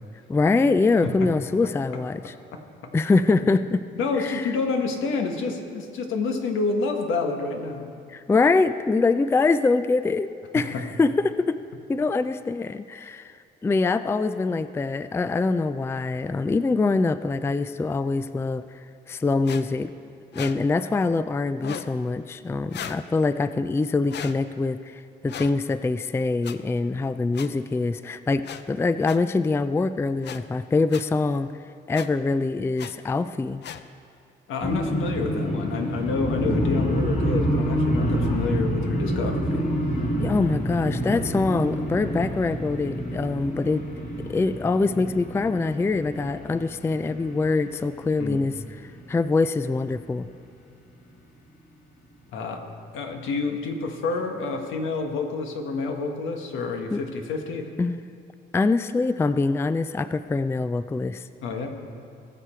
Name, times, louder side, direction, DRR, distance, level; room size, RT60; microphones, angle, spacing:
voice 1, 0.3-2.3 2.9-3.8 4.2-4.5 8.1-11.6 11.9-13.3 13.6-18.6 19.1-19.9 20.3-31.5 31.9-33.6 40.2-43.8 44.3-48.6 49.1-50.3 56.9-57.0 57.8-58.0 58.5-61.2, left 3 dB, 15° left, 13 dB, 0.3 m, -24 dB
voice 2, 3.9-7.9 10.5-10.8 34.5-39.6 48.2-48.4 52.3-52.7 52.9-57.7 61.4-61.7, left 4 dB, 80° left, 4 dB, 1.4 m, -28 dB
sound 1, 19.4-19.6 20.3-20.5 21.6-21.9 22.7-23.0 24.1-24.3 25.3-25.5 26.4-26.5 27.3-27.5 28.4-28.6 29.0-29.2 30.2-30.4 30.9-31.0 31.9-32.1 32.8-32.9 33.6-33.8, left 9 dB, 60° left, 0.6 m, -36 dB
sound 2, 34.6-48.5 48.9-49.3 49.6-49.9, equal, 40° left, 2.2 m, -28 dB
20.0 x 6.8 x 4.4 m, 2.4 s
cardioid pair, 90°, 20 cm